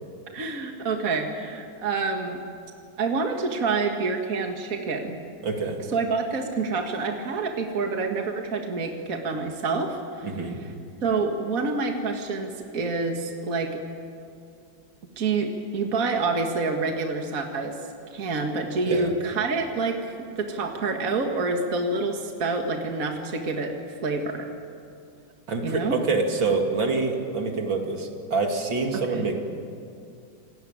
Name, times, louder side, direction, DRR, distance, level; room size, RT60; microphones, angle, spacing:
voice 1, 0.3-2.4 3.0-5.2 5.9-10.3 11.0-13.8 15.2-17.8 18.1-24.5 25.6-26.0 28.9-29.3, right 3 dB, 45° right, 3 dB, 2.2 m, -27 dB
voice 2, 5.4-5.8 10.2-10.6 18.9-19.1 25.5-29.4, right 4 dB, 70° right, 3 dB, 3.1 m, -26 dB
28.0 x 19.5 x 9.0 m, 2.4 s
omnidirectional pair, 2.2 m